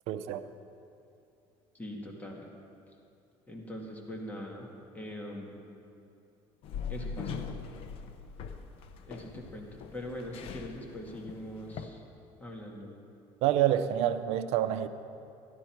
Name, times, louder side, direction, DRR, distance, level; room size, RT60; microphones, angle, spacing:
voice 1, 0.1-0.5 13.4-14.9, right 11 dB, 75° right, 11 dB, 0.6 m, -27 dB
voice 2, 1.7-2.5 3.5-4.7 4.9-5.6 6.9-7.5 9.1-12.0 12.4-12.9, left 1 dB, 15° left, 0 dB, 1.9 m, -42 dB
sound 1, 6.6-11.9, left 6 dB, 60° left, 0.8 m, -41 dB
12.5 x 12.5 x 4.5 m, 2.6 s
cardioid pair, 115°, 11 cm